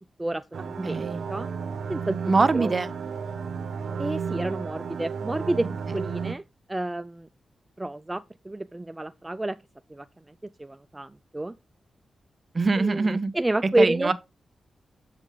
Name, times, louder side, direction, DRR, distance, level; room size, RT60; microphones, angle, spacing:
voice 1, 0.2-1.5 1.9-2.2 2.5-2.7 4.0-5.7 5.9-6.4 6.7-7.3 7.8-9.6 9.9-10.1 10.6-11.5 12.8-14.1, right 2 dB, 15° right, 0.3 m, -29 dB
sound 1, 0.5-6.3, right 6 dB, 90° right, 0.7 m, -33 dB
voice 2, 0.8-1.2 2.2-2.9 12.5-13.3 13.8-14.1, right 3 dB, 40° right, 0.7 m, -23 dB
7.5 x 4.9 x 3.5 m
cardioid pair, 75°, 0 cm